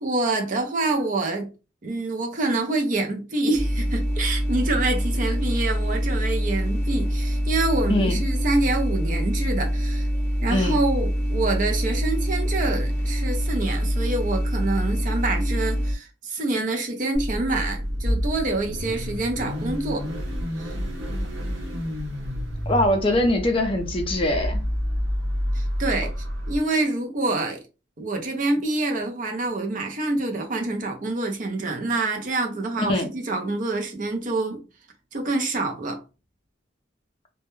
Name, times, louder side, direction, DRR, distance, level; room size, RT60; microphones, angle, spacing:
voice 1, 0.0-1.5 1.8-10.1 10.4-20.1 20.6-20.8 25.5-26.1 26.5-27.6 28.0-34.6 35.1-36.0, right 2 dB, 40° right, 0.5 m, -26 dB
sound 1, 3.5-15.9, equal, 10° left, 0.8 m, -25 dB
voice 2, 7.9-8.2 10.5-10.8 22.7-24.6 32.9-33.1, left 1 dB, 30° left, 0.4 m, -22 dB
Car / Idling / Accelerating revving vroom, 17.1-26.6, equal, 90° right, 0.9 m, -29 dB
2.2 x 2.1 x 3.0 m
head